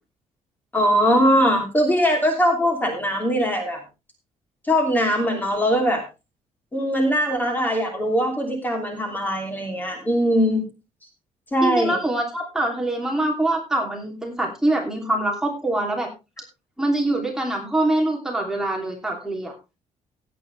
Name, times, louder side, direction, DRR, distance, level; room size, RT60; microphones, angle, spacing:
voice 1, 0.7-3.8 4.7-6.0 6.7-10.7 11.5-12.0, equal, 15° left, 4 dB, 2.9 m, -21 dB
voice 2, 11.6-16.1 16.8-19.5, right 1 dB, 5° right, -1 dB, 2.9 m, -24 dB
17.0 x 8.5 x 3.3 m, 0.27 s
cardioid pair, 160°, 13 cm